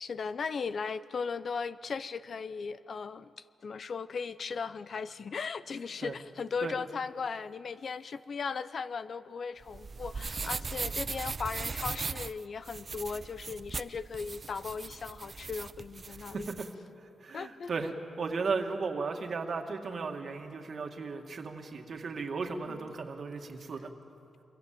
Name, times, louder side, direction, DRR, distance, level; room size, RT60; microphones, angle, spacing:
voice 1, 0.0-3.3 3.6-16.5 17.3-17.7 22.7-22.8, left 5 dB, 55° left, 15 dB, 0.6 m, -37 dB
sound 1, 9.6-16.7, right 4 dB, 35° right, 0.5 m, -38 dB
voice 2, 17.2-23.9, right 4 dB, 55° right, 3 dB, 2.1 m, -35 dB
24.5 x 23.0 x 7.7 m, 2.6 s
cardioid pair, 100°, 0 cm